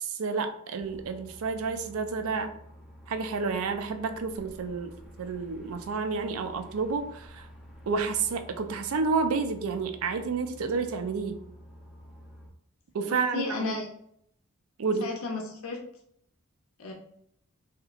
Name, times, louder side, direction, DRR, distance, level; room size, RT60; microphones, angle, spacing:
voice 1, 0.0-2.5 3.1-4.9 5.2-7.5 7.9-11.4 12.9-13.7 14.8-15.1, right 4 dB, 80° right, 8 dB, 0.4 m, -30 dB
sound 1, 0.8-12.5, equal, 5° right, 0.5 m, -50 dB
voice 2, 13.1-13.9 15.0-15.8 16.8-16.9, left 3 dB, 85° left, 1 dB, 0.7 m, -33 dB
3.2 x 2.8 x 2.4 m, 0.68 s
head